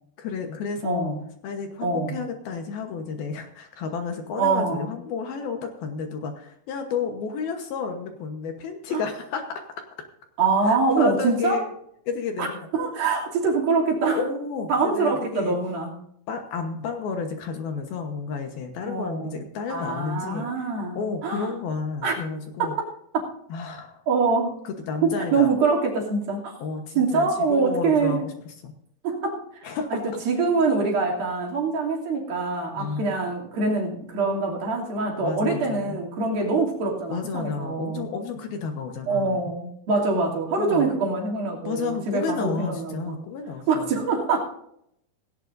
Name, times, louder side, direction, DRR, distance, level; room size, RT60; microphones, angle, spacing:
voice 1, 0.2-1.2 1.4-9.6 10.7-11.7 12.1-12.7 14.1-15.6 16.3-22.7 23.5-24.0 24.6-25.5 26.6-28.7 29.6-30.0 32.8-33.1 35.2-36.0 37.1-39.5 40.6-40.9 41.6-44.0, left 5 dB, 70° left, 4 dB, 2.8 m, -31 dB
voice 2, 0.8-1.2 1.8-2.2 4.4-4.9 8.9-9.0 10.4-11.6 12.4-12.5 12.7-14.2 14.7-16.0 18.9-19.4 19.7-21.5 22.0-22.2 22.6-22.9 23.1-23.2 24.1-24.5 25.0-26.5 27.0-28.2 29.0-38.1 39.1-43.2 43.7-44.4, right 4 dB, 60° right, -2 dB, 4.5 m, -24 dB
17.5 x 17.0 x 2.6 m, 0.74 s
omnidirectional pair, 5.0 m